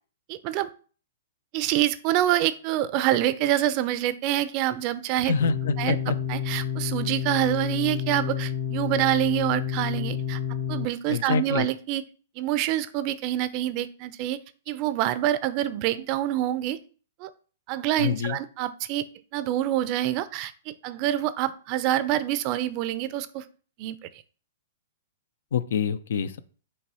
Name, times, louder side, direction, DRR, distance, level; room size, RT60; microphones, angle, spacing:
voice 1, 0.3-0.7 1.5-5.3 5.8-10.4 10.7-12.0 12.4-14.4 14.7-16.8 17.2-17.3 17.7-19.0 19.3-23.4 23.8-24.1, right 13 dB, 40° right, 14 dB, 0.5 m, -26 dB
voice 2, 5.2-6.1 11.1-11.7 18.0-18.4 25.5-26.4, left 6 dB, 75° left, 14 dB, 0.5 m, -26 dB
sound 1, 5.4-10.9, left 9 dB, 25° left, 0.7 m, -29 dB
5.5 x 3.2 x 5.4 m, 0.40 s
hypercardioid pair, 135°, 0 cm